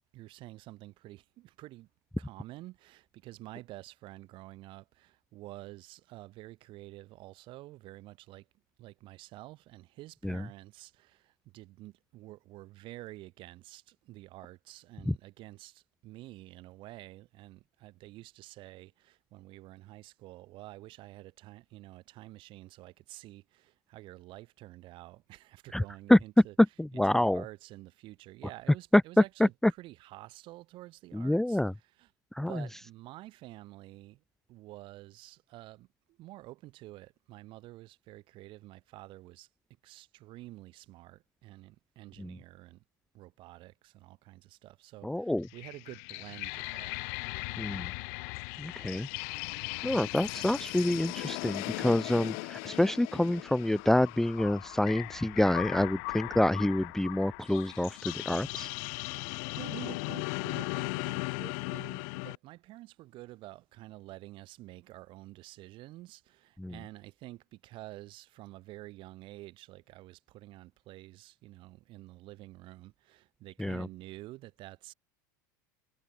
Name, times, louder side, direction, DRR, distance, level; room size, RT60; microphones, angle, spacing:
voice 1, 0.1-1.9 2.2-8.5 8.8-26.5 26.9-31.6 32.0-32.1 32.5-34.2 34.5-39.5 39.8-42.8 43.1-47.0 49.5-49.8 59.2-74.9, right 18 dB, 55° right, 5.6 m, -49 dB
voice 2, 26.8-27.4 28.9-29.7 31.1-31.7 32.3-32.6 42.2-42.3 45.0-45.5 47.6-47.9 48.6-49.1 49.8-58.7 66.6-66.8 73.6-73.9, left 1 dB, 5° left, 0.6 m, -27 dB
sound 1, 45.4-62.4, left 38 dB, 65° left, 0.8 m, -38 dB
hypercardioid pair, 100°, 10 cm